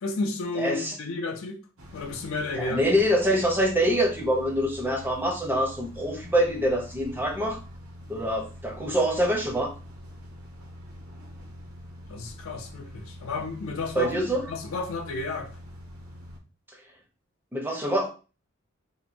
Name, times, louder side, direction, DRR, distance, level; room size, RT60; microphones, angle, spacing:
voice 1, 0.0-1.6 1.9-2.8 12.1-14.1 14.5-15.5, left 3 dB, 80° left, 0.5 m, -32 dB
voice 2, 0.6-1.0 2.5-7.6 8.1-9.7 14.0-14.5 17.5-18.1, equal, 10° right, 0.4 m, -25 dB
sound 1, 1.8-16.4, equal, 85° right, 0.7 m, -44 dB
2.7 x 2.1 x 2.5 m
head